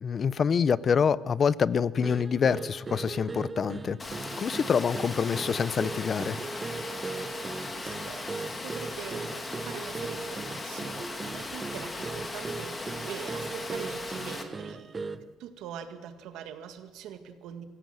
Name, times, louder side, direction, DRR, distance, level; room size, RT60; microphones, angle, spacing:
voice 1, 0.0-4.0 4.4-6.4, left 6 dB, 35° left, 19 dB, 0.6 m, -26 dB
sound 1, 2.0-15.3, right 4 dB, 20° right, 0.7 m, -38 dB
Water, 4.0-14.4, left 2 dB, 20° left, 2.2 m, -38 dB
voice 2, 7.7-9.3 9.6-17.6, right 8 dB, 85° right, 8 dB, 1.9 m, -43 dB
24.5 x 16.0 x 7.7 m, 1.4 s
cardioid pair, 140°, 0 cm